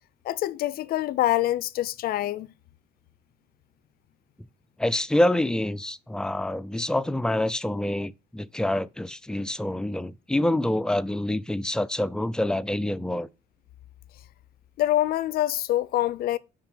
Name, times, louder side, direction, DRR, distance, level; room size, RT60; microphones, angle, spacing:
voice 1, 0.2-2.5 14.8-16.4, left 14 dB, 60° left, 0.5 m, -25 dB
voice 2, 4.8-13.3, left 1 dB, 5° left, 0.3 m, -26 dB
6.0 x 4.9 x 5.1 m
cardioid pair, 110°, 17 cm